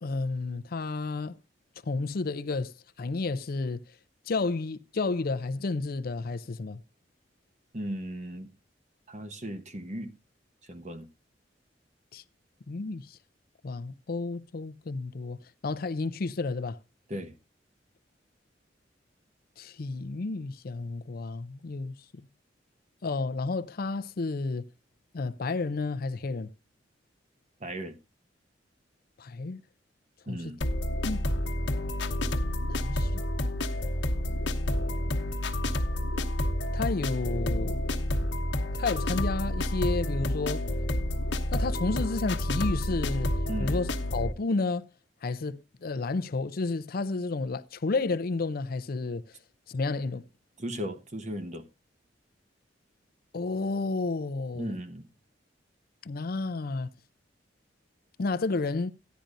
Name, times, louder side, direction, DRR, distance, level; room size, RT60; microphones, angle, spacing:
voice 1, 0.0-1.4 1.9-3.8 4.3-6.8 12.1-12.2 12.7-13.2 13.6-15.4 15.6-16.8 19.6-21.9 23.0-24.7 25.1-26.5 29.2-29.6 30.3-30.4 31.0-31.2 32.7-33.2 36.7-37.8 38.7-40.6 41.5-43.3 43.6-44.8 45.2-49.2 49.7-50.2 53.3-54.7 56.0-56.9 58.2-58.9, left 3 dB, 55° left, 0.5 m, -31 dB
voice 2, 7.7-8.5 9.1-10.1 10.7-11.1 17.1-17.4 27.6-28.0 30.3-30.6 32.9-33.0 43.5-43.7 50.6-51.6 54.5-55.1, equal, 40° right, 1.1 m, -36 dB
sound 1, 30.6-44.3, left 1 dB, 80° left, 1.1 m, -29 dB
15.0 x 10.5 x 2.6 m
head